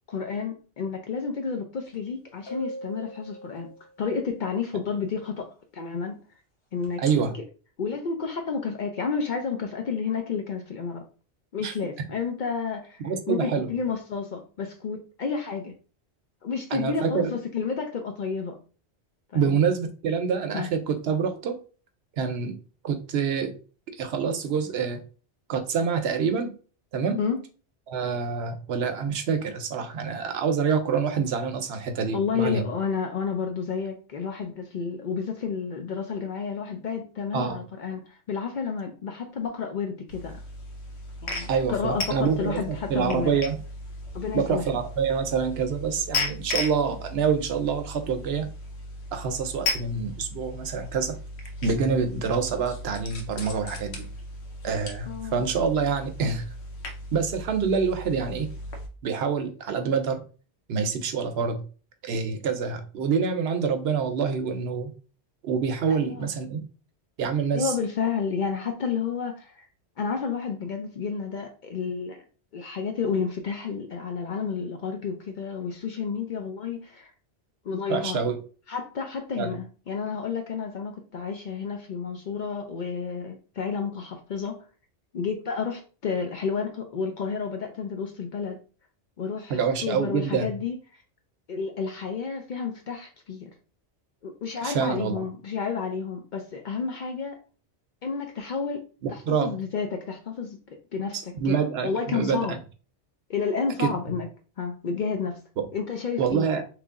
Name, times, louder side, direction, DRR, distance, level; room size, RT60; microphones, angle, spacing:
voice 1, 0.1-3.7 4.0-6.2 6.7-7.0 7.8-11.0 11.5-13.0 13.3-15.7 16.4-18.6 19.3-19.6 20.5-20.7 27.2-27.4 32.1-40.4 41.2-43.4 44.1-44.6 55.1-55.4 65.9-66.3 67.5-69.7 70.0-72.2 72.5-77.1 77.6-78.2 78.7-84.6 85.1-88.6 89.2-90.8 91.5-93.5 94.2-97.4 98.0-98.8 99.1-101.2 101.4-101.6 101.8-102.6 103.3-104.3 104.6-105.4 105.7-106.5, left 5 dB, 60° left, 0.5 m, -31 dB
sound 1, 1.9-2.0 2.5-4.2 6.8-7.1, right 1 dB, 25° left, 0.9 m, -39 dB
voice 2, 7.0-7.3 11.6-11.7 13.0-13.7 16.7-17.3 19.3-21.6 22.2-22.6 22.8-23.5 24.0-25.0 25.5-26.5 26.9-27.2 27.9-32.6 37.3-37.6 41.5-43.6 44.3-48.5 49.1-51.2 51.6-54.1 54.6-56.4 57.1-58.5 59.0-60.2 60.7-61.6 62.0-64.9 65.4-66.6 67.2-67.7 77.9-78.4 79.4-79.6 89.5-90.5 94.6-95.2 99.0-99.5 101.1-102.6 103.8-103.9 105.6-105.7 106.2-106.6, right 6 dB, 70° right, 0.8 m, -26 dB
sound 2, 40.1-58.9, left 2 dB, 75° left, 1.0 m, -36 dB
3.1 x 2.5 x 3.5 m
omnidirectional pair, 1.1 m